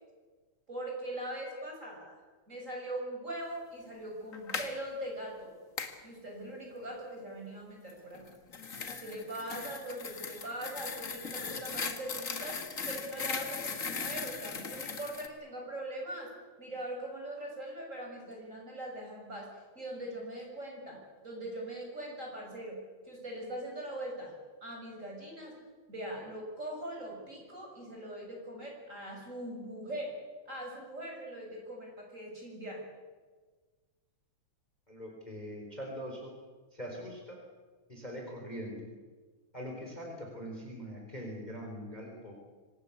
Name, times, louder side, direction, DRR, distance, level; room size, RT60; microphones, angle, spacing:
voice 1, 0.7-2.2 2.5-5.5 6.0-8.3 9.0-16.3 16.6-24.3 24.6-25.6 25.9-30.1 30.5-32.8, right 1 dB, 25° right, 0 dB, 7.2 m, -41 dB
sound 1, 4.3-4.7 5.8-6.0 8.1-15.3, left 5 dB, 35° left, 1.5 m, -38 dB
voice 2, 34.9-36.3 36.7-37.4 37.9-38.8 39.5-42.3, equal, 15° left, 0 dB, 4.2 m, -42 dB
25.5 x 18.5 x 8.4 m, 1.4 s
omnidirectional pair, 3.3 m